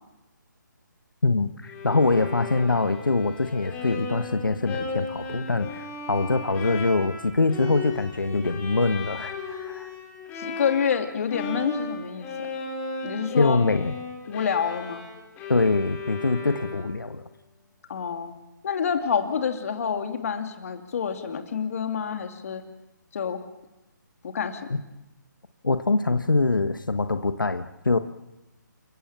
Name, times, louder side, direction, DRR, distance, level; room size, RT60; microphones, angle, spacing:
voice 1, 1.2-9.9 13.4-13.9 15.5-17.2 24.7-24.8 25.6-28.0, left 3 dB, 85° left, 9 dB, 1.3 m, -24 dB
Bowed string instrument, 1.7-11.0 11.3-17.1, left 3 dB, 15° left, 4.8 m, -36 dB
voice 2, 10.4-12.5 13.0-13.7 14.3-15.0 17.9-18.3 18.6-22.6 23.1-23.4 24.2-24.8, left 7 dB, 45° left, 5 dB, 2.8 m, -28 dB
29.0 x 15.5 x 7.5 m, 0.97 s
figure-of-eight pair, 150°, 11 cm